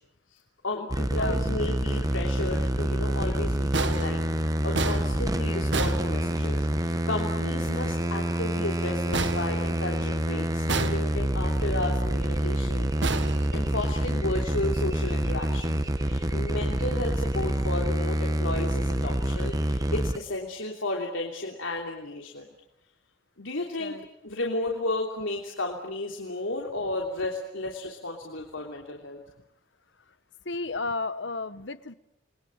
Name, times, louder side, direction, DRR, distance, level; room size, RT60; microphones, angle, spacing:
voice 1, 0.6-12.9 13.5-22.5 23.4-24.0 24.2-29.2, left 2 dB, 85° left, 0 dB, 3.3 m, -33 dB
sound 1, 0.9-20.2, right 1 dB, 20° right, 1.2 m, -27 dB
sound 2, 3.7-6.8 9.1-10.2 10.7-11.5 13.0-14.1, right 3 dB, 65° right, 1.6 m, -32 dB
voice 2, 30.4-31.9, left 3 dB, 65° left, 13 dB, 1.3 m, -33 dB
29.5 x 22.0 x 9.0 m, 0.88 s
head